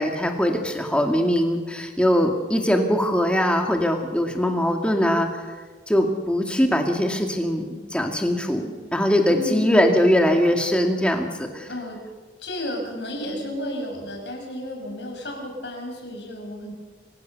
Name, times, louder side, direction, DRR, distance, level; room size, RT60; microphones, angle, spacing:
voice 1, 0.0-5.4 5.9-11.7, equal, 5° left, 3 dB, 2.2 m, -21 dB
voice 2, 9.3-10.0 11.7-12.0 12.4-16.7, left 1 dB, 75° left, 2 dB, 6.6 m, -32 dB
27.0 x 16.0 x 6.8 m, 1.4 s
head